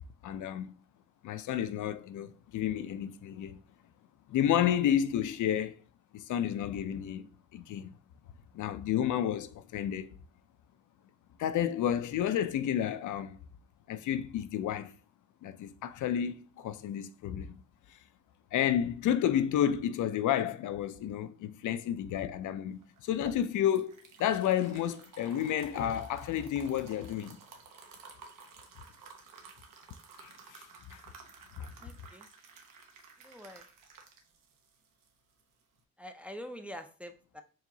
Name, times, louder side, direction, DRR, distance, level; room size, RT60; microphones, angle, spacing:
voice 1, 0.2-0.7 1.2-3.6 4.3-5.8 6.1-8.0 8.5-10.1 11.4-13.4 13.9-14.9 15.4-17.6 17.9-18.0 18.5-23.9 24.2-27.4 30.2-31.0 31.6-31.7, left 10 dB, 65° left, 0.4 m, -31 dB
sound 1, 22.8-35.8, right 5 dB, 75° right, 0.9 m, -53 dB
voice 2, 31.8-32.3 33.2-33.6 36.0-37.4, equal, 5° right, 0.4 m, -45 dB
4.7 x 2.9 x 2.7 m
cardioid pair, 80°, 33 cm